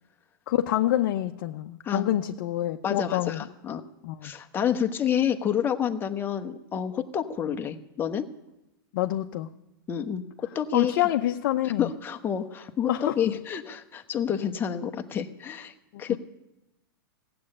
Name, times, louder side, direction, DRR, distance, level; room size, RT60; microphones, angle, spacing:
voice 1, 0.5-3.4 4.0-4.3 8.9-9.5 10.7-11.9 12.9-13.1 15.9-16.2, left 13 dB, 55° left, 3 dB, 0.8 m, -27 dB
voice 2, 2.8-3.8 4.2-8.3 9.9-10.9 11.6-12.9 13.1-16.2, left 8 dB, 20° left, 5 dB, 1.0 m, -29 dB
16.0 x 7.8 x 9.8 m, 0.93 s
hypercardioid pair, 130°, 12 cm